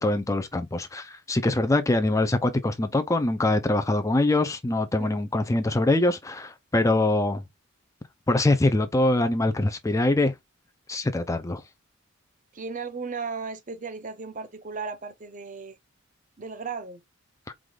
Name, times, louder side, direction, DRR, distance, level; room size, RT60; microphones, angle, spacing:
voice 1, 0.0-7.4 8.3-10.3 10.9-11.6, left 2 dB, 15° left, 0.4 m, -23 dB
voice 2, 12.5-15.8 16.4-17.0, right 4 dB, 35° right, 0.6 m, -35 dB
4.8 x 2.3 x 3.8 m
head